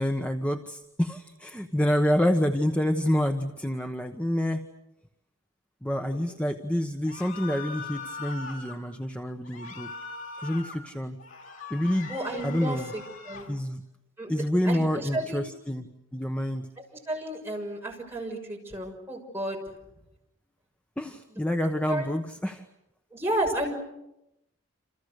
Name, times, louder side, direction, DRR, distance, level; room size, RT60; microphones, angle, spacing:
voice 1, 0.0-4.7 5.8-9.9 10.4-11.2 11.7-12.1 12.4-12.9 13.5-13.8 14.3-16.7 21.0-22.7, left 1 dB, 5° left, 5 dB, 1.1 m, -28 dB
voice 2, 6.0-6.4 12.1-13.5 14.2-14.4 14.6-15.4 17.1-19.6 21.9-22.1 23.1-23.7, right 1 dB, 10° right, -1 dB, 6.5 m, -32 dB
sound 1, 7.1-8.8 9.5-10.8 11.2-13.5, left 4 dB, 85° left, 7.3 m, -41 dB
29.5 x 28.0 x 6.6 m, 0.87 s
head